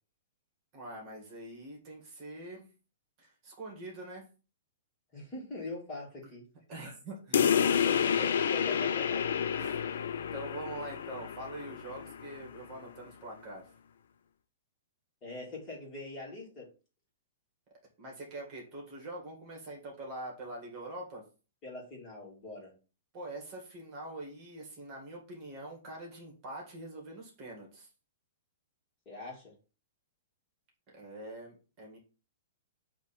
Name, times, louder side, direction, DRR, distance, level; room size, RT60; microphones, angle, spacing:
voice 1, 0.7-2.7 3.2-4.2 6.7-7.5 8.1-8.2 9.5-9.8 10.3-13.7 18.0-21.2 23.1-27.9 30.9-32.0, right 1 dB, 25° right, -1 dB, 2.1 m, -44 dB
voice 2, 5.1-6.4 7.9-9.3 15.2-16.7 21.6-22.7 29.1-29.5, left 2 dB, 20° left, -3 dB, 2.2 m, -43 dB
sound 1, 7.3-12.4, left 8 dB, 70° left, 0.6 m, -29 dB
7.9 x 3.0 x 4.3 m, 0.34 s
hypercardioid pair, 170°, 0 cm